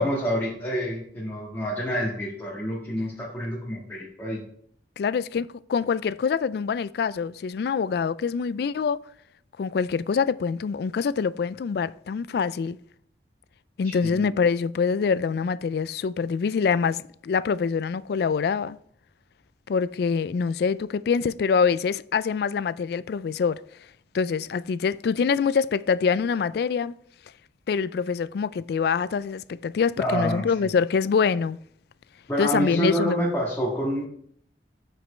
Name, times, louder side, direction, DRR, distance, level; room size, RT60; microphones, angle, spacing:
voice 1, 0.0-4.4 13.8-14.3 30.0-30.5 32.3-34.1, equal, 15° left, 1.6 m, -28 dB
voice 2, 5.0-9.0 9.6-12.8 13.8-18.8 19.7-23.6 24.1-26.9 27.7-31.6 32.4-33.2, left 6 dB, 60° left, 0.3 m, -25 dB
9.2 x 5.1 x 4.4 m
head